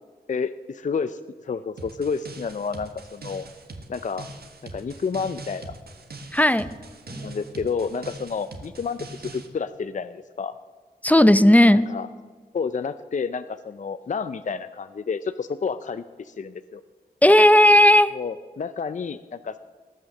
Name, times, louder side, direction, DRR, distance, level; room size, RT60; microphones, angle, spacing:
voice 1, 0.3-3.5 3.9-4.3 4.7-5.7 7.2-10.6 11.7-12.1 12.5-16.8 18.1-19.6, left 5 dB, 50° left, 13 dB, 0.5 m, -30 dB
sound 1, 1.8-9.5, right 2 dB, 70° right, 1.5 m, -42 dB
voice 2, 6.3-6.7 11.0-11.8 17.2-18.1, left 1 dB, 10° left, 14 dB, 0.6 m, -14 dB
Drum, 7.1-9.8, right 2 dB, 35° right, 3.4 m, -47 dB
18.5 x 6.3 x 7.1 m, 1.5 s
cardioid pair, 55°, 17 cm